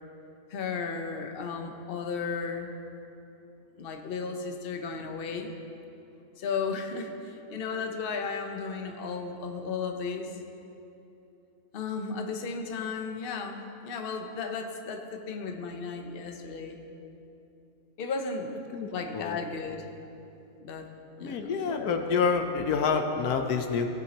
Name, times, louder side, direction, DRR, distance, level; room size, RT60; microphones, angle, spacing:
voice 1, 0.5-2.7 3.8-5.5 6.4-10.3 11.7-16.8 18.0-18.5 18.9-19.8 20.6-20.9 21.2-22.2, left 5 dB, 45° left, 4 dB, 0.9 m, -34 dB
voice 2, 21.2-23.9, left 5 dB, 85° left, 5 dB, 1.3 m, -27 dB
18.0 x 8.9 x 2.9 m, 2.8 s
omnidirectional pair, 1.6 m